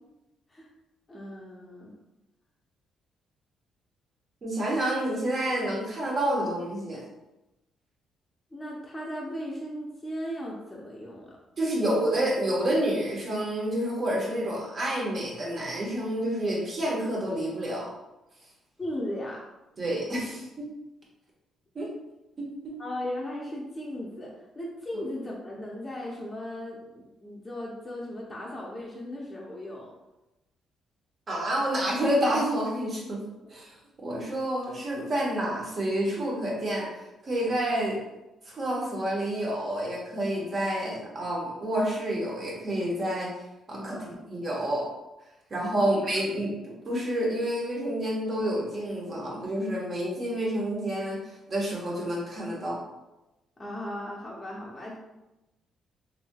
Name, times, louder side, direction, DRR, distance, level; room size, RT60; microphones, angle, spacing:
voice 1, 1.1-1.9 8.5-11.4 18.8-19.4 22.8-29.9 43.7-44.3 45.8-45.9 53.6-55.0, left 1 dB, 20° left, -5 dB, 0.6 m, -37 dB
voice 2, 4.4-7.0 11.6-17.9 19.8-20.7 21.7-21.9 22.4-22.7 31.3-33.2 33.5-33.8 34.0-36.9 37.2-38.0 38.4-43.3 43.7-44.0 44.3-44.9 45.5-52.8, right 1 dB, 45° right, -4 dB, 1.1 m, -29 dB
3.2 x 2.6 x 2.2 m, 0.97 s
cardioid pair, 90°, 0 cm